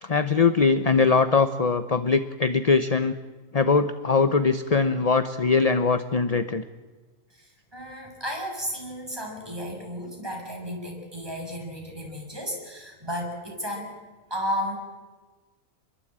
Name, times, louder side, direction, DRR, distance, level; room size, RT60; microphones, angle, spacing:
voice 1, 0.0-3.1 3.5-6.6, left 4 dB, 30° left, 11 dB, 0.9 m, -21 dB
voice 2, 7.3-13.9 14.3-14.8, equal, 15° right, 0 dB, 6.8 m, -33 dB
28.5 x 22.0 x 8.9 m, 1.3 s
omnidirectional pair, 1.5 m